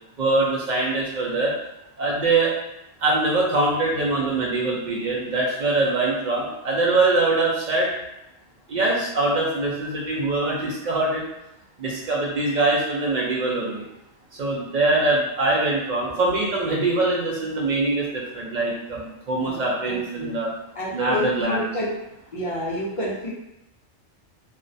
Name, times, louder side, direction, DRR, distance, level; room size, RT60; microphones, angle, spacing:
voice 1, 0.2-1.5 2.0-2.5 3.0-7.9 8.7-11.3 11.8-13.8 14.4-20.5 20.9-21.7, right 2 dB, 60° right, -3 dB, 0.5 m, -23 dB
voice 2, 19.4-20.4 20.7-21.9 22.3-23.3, left 1 dB, 50° left, -5 dB, 0.4 m, -29 dB
2.3 x 2.1 x 2.6 m, 0.89 s
omnidirectional pair, 1.2 m